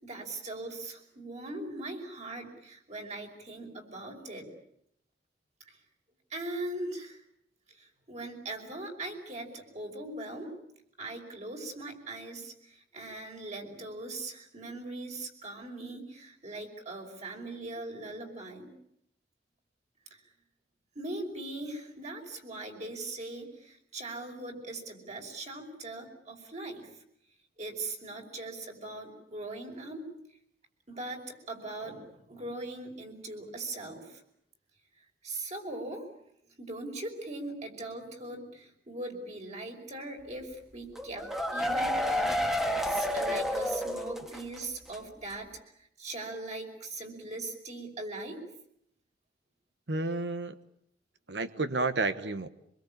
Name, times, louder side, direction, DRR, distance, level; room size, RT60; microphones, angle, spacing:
voice 1, 0.0-4.5 5.7-5.8 6.3-7.2 7.7-10.5 11.0-18.7 20.1-20.2 21.0-26.9 27.6-30.1 30.9-34.2 35.2-36.1 36.6-45.5 45.8-48.4, right 2 dB, 40° right, 2 dB, 5.4 m, -40 dB
sound 1, 40.9-44.6 44.9-45.0 45.3-45.4, equal, ahead, 1.8 m, -30 dB
voice 2, 49.9-50.5 51.3-52.5, right 3 dB, 75° right, 11 dB, 1.2 m, -31 dB
25.0 x 22.5 x 8.7 m, 0.74 s
head